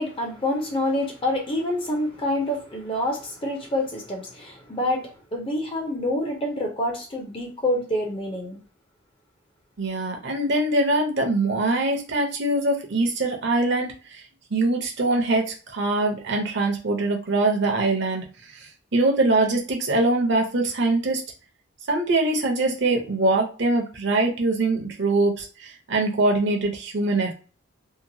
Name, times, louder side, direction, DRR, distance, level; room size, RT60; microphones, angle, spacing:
voice 1, 0.0-8.6, left 1 dB, 25° left, 0.6 m, -27 dB
voice 2, 9.8-14.2 14.5-18.3 18.5-21.2 21.9-27.3, right 2 dB, 55° right, 0.7 m, -23 dB
2.8 x 2.2 x 2.7 m
head